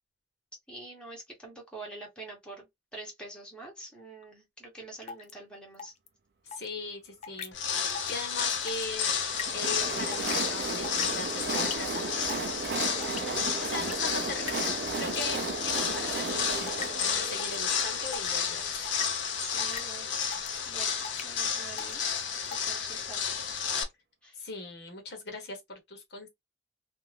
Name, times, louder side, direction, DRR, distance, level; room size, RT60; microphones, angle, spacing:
voice 1, 0.7-2.7 2.9-5.9 13.0-13.4 19.4-20.1 20.7-22.0 22.6-23.8 24.2-24.4, right 2 dB, 5° left, 0.9 m, -45 dB
sound 1, 5.1-5.3 5.8-6.1 6.5-6.7 7.2-7.5 7.9-8.1 8.4-8.9 9.4-9.5 10.1-10.3 10.7-11.2 11.6-11.7 12.3-12.7 13.0-13.2 13.7-13.9 14.5-14.7 15.1-15.4 15.9-16.1 16.7-16.9 17.4-17.6 18.1-18.3 18.8-19.0 19.6-19.8 20.3-20.6 21.0-21.3 21.8-21.9 22.5-22.6, left 6 dB, 35° left, 0.4 m, -39 dB
voice 2, 6.4-9.1 9.5-12.0 13.6-14.6 14.9-15.4 15.6-18.9 24.3-26.3, left 3 dB, 60° left, 1.0 m, -40 dB
sound 2, 7.5-23.8, left 7 dB, 80° left, 0.6 m, -32 dB
Train, 9.2-18.8, right 4 dB, 55° right, 0.5 m, -35 dB
2.5 x 2.3 x 3.1 m
head